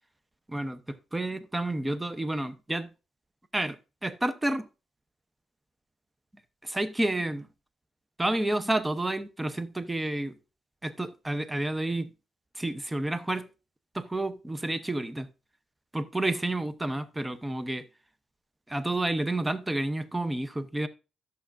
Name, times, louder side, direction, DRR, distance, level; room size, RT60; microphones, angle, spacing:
voice 1, 0.5-2.9 3.5-4.7 6.6-7.5 8.2-10.4 10.8-12.1 12.5-13.5 13.9-15.3 15.9-17.8 18.7-20.9, right 1 dB, 10° right, 0.7 m, -30 dB
11.0 x 7.0 x 2.6 m
cardioid pair, 90°, 0 cm